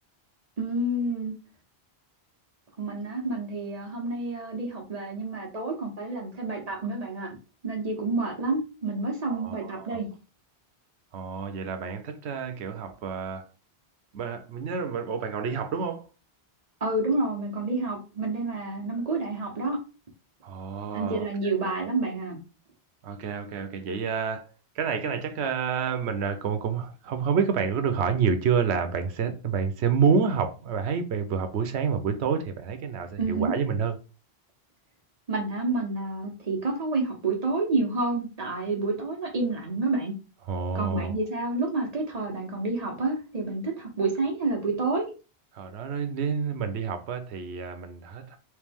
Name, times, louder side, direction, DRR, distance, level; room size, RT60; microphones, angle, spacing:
voice 1, 0.6-1.3 2.8-7.4 7.6-10.1 16.8-19.8 20.9-22.4 33.2-33.5 35.3-40.1 40.7-45.0, right 3 dB, 40° right, 1.1 m, -29 dB
voice 2, 9.2-10.0 11.1-13.5 14.1-16.1 20.4-21.5 23.0-34.0 40.4-41.1 45.5-48.4, right 6 dB, 90° right, 0.9 m, -28 dB
3.2 x 3.2 x 3.4 m
omnidirectional pair, 1.1 m